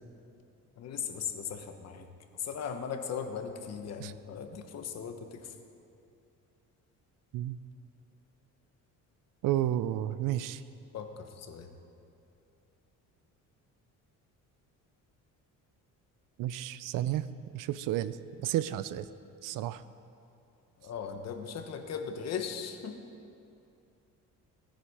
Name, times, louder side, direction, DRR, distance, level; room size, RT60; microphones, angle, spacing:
voice 1, 0.8-2.1 2.4-5.5 10.9-11.7 20.8-23.0, left 7 dB, 50° left, 6 dB, 1.1 m, -38 dB
voice 2, 9.4-10.6 16.4-17.2 17.5-18.2 18.4-19.1 19.4-19.8, right 13 dB, 75° right, 15 dB, 0.6 m, -31 dB
17.5 x 10.0 x 4.9 m, 2.6 s
cardioid pair, 155°, 33 cm